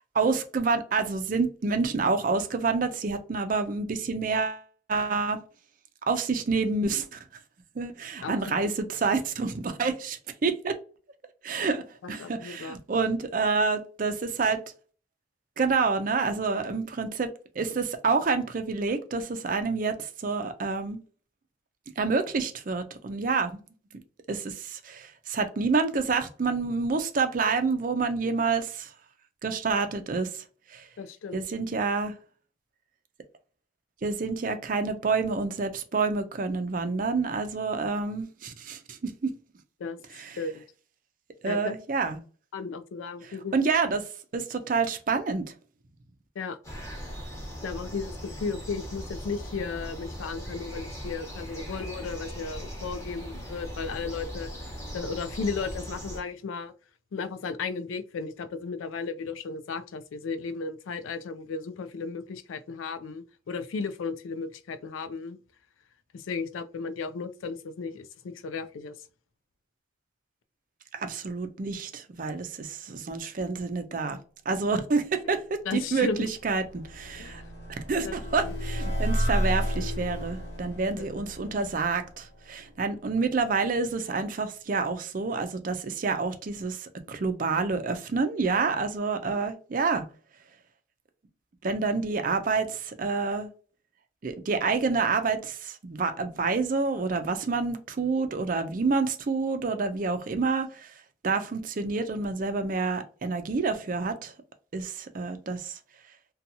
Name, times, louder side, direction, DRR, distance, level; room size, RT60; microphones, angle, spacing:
voice 1, 0.1-4.6 4.9-5.4 6.1-7.2 7.8-10.8 11.4-14.6 15.6-17.3 17.6-21.0 22.0-23.6 24.3-28.9 29.4-30.4 30.7-30.9 31.3-32.1 34.0-39.3 40.1-40.4 41.4-42.2 43.2-45.4 70.9-74.2 74.5-77.4 77.9-90.0 91.6-93.5 94.2-100.9 101.2-104.3 104.7-105.8, right 4 dB, 45° right, 0.4 m, -28 dB
voice 2, 8.2-8.7 12.0-12.7 31.0-31.4 39.8-40.0 40.4-40.6 41.4-41.6 42.5-43.6 46.4-46.6 47.6-54.5 54.9-56.7 57.1-65.4 66.1-68.1 68.4-68.9 75.7-76.3 77.2-77.4 78.0-78.2 78.4-78.6 81.0-81.1, left 4 dB, 90° left, 0.4 m, -35 dB
sound 1, 46.6-56.2, equal, 15° left, 0.9 m, -39 dB
sound 2, 75.8-82.9, equal, 55° left, 1.0 m, -32 dB
2.7 x 2.2 x 2.6 m
head